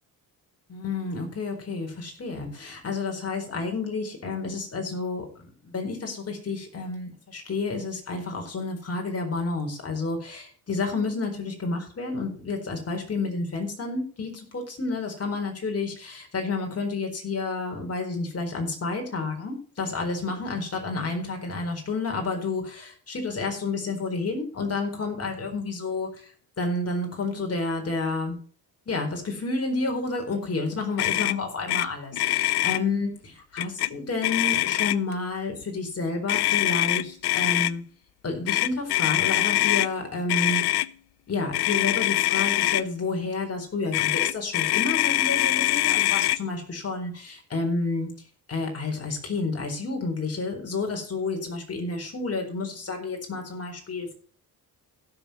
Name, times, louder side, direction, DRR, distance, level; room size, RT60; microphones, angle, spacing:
voice 1, 0.7-26.3 26.6-28.4 28.9-37.8 38.2-40.8 41.3-48.1 48.5-54.1, left 3 dB, 40° left, 3 dB, 4.3 m, -30 dB
Motor vehicle (road), 31.0-31.4 31.7-31.9 32.1-32.8 33.6-33.9 34.2-35.1 36.3-37.7 38.5-39.9 40.3-40.9 41.5-42.8 43.9-46.4, left 15 dB, 80° left, 0.6 m, -23 dB
15.5 x 7.0 x 4.3 m, 0.43 s
cardioid pair, 105°, 38 cm